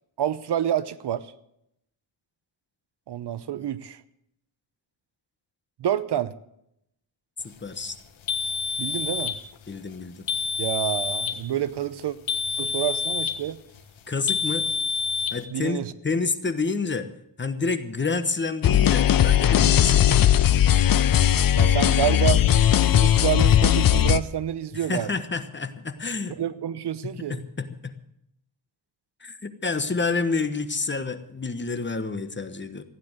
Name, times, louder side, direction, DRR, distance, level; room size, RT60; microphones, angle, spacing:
voice 1, 0.2-1.3 3.1-4.0 5.8-6.3 8.8-9.3 10.6-12.2 12.6-13.6 15.5-15.9 21.5-22.4 22.8-25.1 26.4-27.4, right 10 dB, 60° right, 16 dB, 0.8 m, -28 dB
voice 2, 7.4-7.9 9.7-10.3 14.1-14.6 15.3-17.1 17.4-20.4 24.7-26.4 27.0-27.9 29.2-32.8, left 4 dB, 25° left, 10 dB, 1.2 m, -29 dB
sound 1, 8.3-9.4 10.3-11.4 12.3-13.4 14.3-15.4, left 6 dB, 80° left, 1.5 m, -27 dB
sound 2, 18.6-24.2, left 10 dB, 50° left, 0.7 m, -18 dB
15.5 x 9.8 x 8.0 m, 0.76 s
wide cardioid pair, 125°, 46 cm